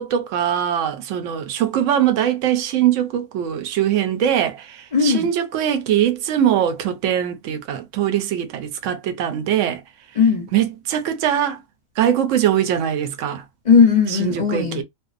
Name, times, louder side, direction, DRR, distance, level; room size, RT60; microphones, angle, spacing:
voice 1, 0.0-9.8 10.5-11.6 12.0-13.4 14.2-14.8, right 10 dB, 75° right, 0.9 m, -21 dB
voice 2, 4.9-5.3 10.2-10.5 13.6-14.8, left 6 dB, 45° left, 0.6 m, -17 dB
2.5 x 2.1 x 2.4 m
omnidirectional pair, 1.3 m